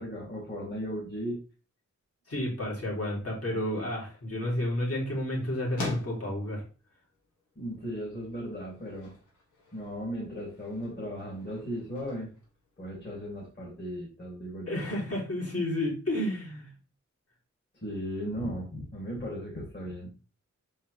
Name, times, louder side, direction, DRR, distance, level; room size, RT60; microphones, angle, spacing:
voice 1, 0.0-1.4 7.6-9.1 9.7-12.3 12.8-14.8 17.8-20.2, equal, 35° left, -4 dB, 2.7 m, -36 dB
voice 2, 2.3-6.6 14.7-16.7, left 1 dB, 55° left, -4 dB, 3.4 m, -31 dB
sound 1, 3.7-13.5, left 3 dB, 85° left, 2.3 m, -46 dB
6.7 x 5.4 x 3.4 m, 0.34 s
wide cardioid pair, 120°, 29 cm